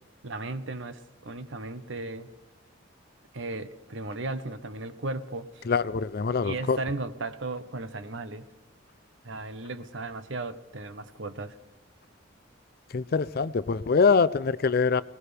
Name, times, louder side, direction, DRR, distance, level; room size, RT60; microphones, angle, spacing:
voice 1, 0.2-2.3 3.3-5.6 6.4-8.5 9.2-11.6, right 2 dB, 65° right, 1.0 m, -36 dB
voice 2, 5.7-6.8 12.9-15.0, left 5 dB, 50° left, 0.5 m, -24 dB
22.5 x 19.0 x 3.4 m
head